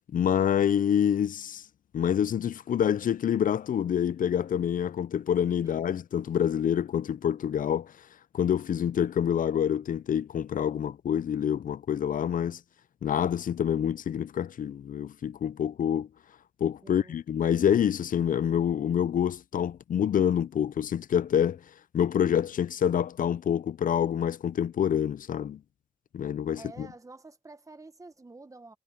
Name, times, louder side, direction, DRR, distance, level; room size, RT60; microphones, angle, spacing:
voice 1, 0.1-1.6 1.9-7.9 8.3-12.6 13.0-16.1 16.6-21.6 21.9-25.6 26.1-26.9, left 9 dB, 70° left, 0.4 m, -27 dB
voice 2, 16.8-17.2 26.5-28.8, right 3 dB, 20° right, 1.2 m, -48 dB
wide cardioid pair, 85°, 14 cm